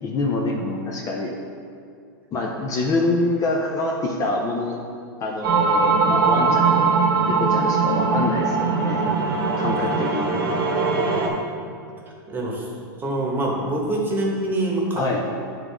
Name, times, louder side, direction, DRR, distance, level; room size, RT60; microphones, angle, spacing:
voice 1, 0.0-1.4 2.3-4.8 5.2-6.9 7.3-9.0 9.6-10.4 14.9-15.2, left 2 dB, 25° left, 0 dB, 0.6 m, -25 dB
sound 1, 5.4-11.3, right 4 dB, 75° right, 1.1 m, -20 dB
voice 2, 12.3-12.6 13.0-15.0, right 1 dB, 15° right, -2 dB, 1.2 m, -25 dB
8.8 x 3.7 x 3.5 m, 2.4 s
hypercardioid pair, 130°, 12 cm